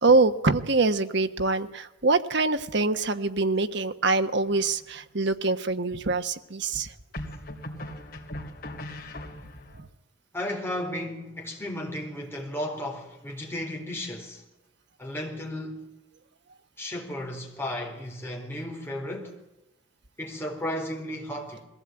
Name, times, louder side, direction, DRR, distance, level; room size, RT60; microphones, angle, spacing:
voice 1, 0.0-6.9 9.7-9.9, right 3 dB, 65° right, 1.2 m, -24 dB
sound 1, 4.5-5.1 7.1-9.8, left 1 dB, 50° left, 2.9 m, -39 dB
voice 2, 10.3-14.4 15.0-15.9 16.8-19.4 20.2-21.6, left 1 dB, 15° left, 4.1 m, -34 dB
21.5 x 16.0 x 9.0 m
head